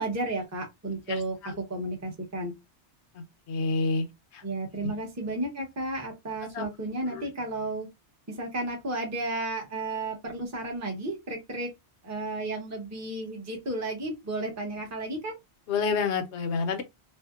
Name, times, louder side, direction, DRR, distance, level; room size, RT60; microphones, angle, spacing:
voice 1, 0.0-2.5 4.4-7.9 8.3-11.7 12.0-15.3, right 2 dB, 15° right, 0.7 m, -33 dB
voice 2, 1.1-1.6 3.1-4.1 4.3-4.4 4.8-4.9 6.5-6.7 7.1-7.3 15.7-16.8, left 4 dB, 70° left, 0.9 m, -29 dB
2.6 x 2.1 x 2.3 m
omnidirectional pair, 1.2 m